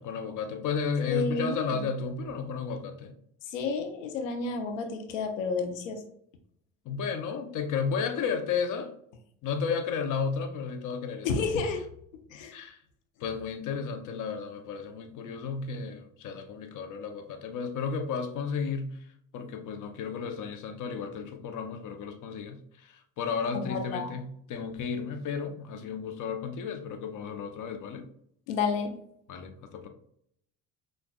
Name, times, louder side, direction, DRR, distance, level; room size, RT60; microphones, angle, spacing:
voice 1, 0.0-3.1 6.8-8.9 9.4-11.4 12.5-12.8 13.2-19.0 19.3-28.1 29.3-29.9, left 5 dB, 55° left, 6 dB, 0.8 m, -33 dB
voice 2, 1.1-1.8 3.5-6.0 11.2-11.8 12.3-12.5 23.5-24.1 28.5-28.9, left 4 dB, 90° left, 6 dB, 0.8 m, -30 dB
5.9 x 2.5 x 2.3 m, 0.68 s
hypercardioid pair, 70°, 38 cm